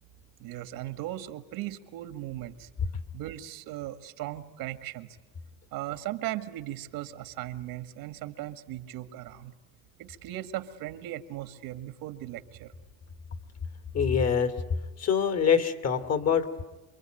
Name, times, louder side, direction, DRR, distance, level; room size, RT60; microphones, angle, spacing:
voice 1, 0.4-2.7 3.1-5.2 5.7-9.5 10.0-12.7, right 14 dB, 80° right, 10 dB, 1.9 m, -38 dB
voice 2, 13.9-14.5 15.0-16.6, left 7 dB, 45° left, 9 dB, 2.6 m, -25 dB
28.0 x 23.0 x 9.1 m, 1.2 s
cardioid pair, 120°, 35 cm